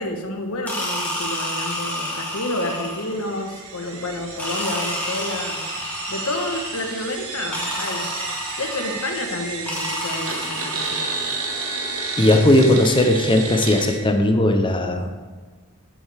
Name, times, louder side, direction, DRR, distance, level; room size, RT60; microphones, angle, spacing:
voice 1, 0.0-5.7 6.1-8.1 8.6-11.1 12.6-12.8, left 1 dB, 80° left, 4 dB, 1.2 m, -29 dB
sound 1, 0.7-3.2 4.4-7.0 7.5-9.1 9.7-11.3, left 1 dB, 5° left, 2.0 m, -29 dB
sound 2, 2.8-14.0, right 4 dB, 90° right, 1.5 m, -31 dB
voice 2, 12.2-15.1, left 1 dB, 20° left, 5 dB, 0.7 m, -17 dB
10.0 x 7.6 x 3.5 m, 1.4 s
head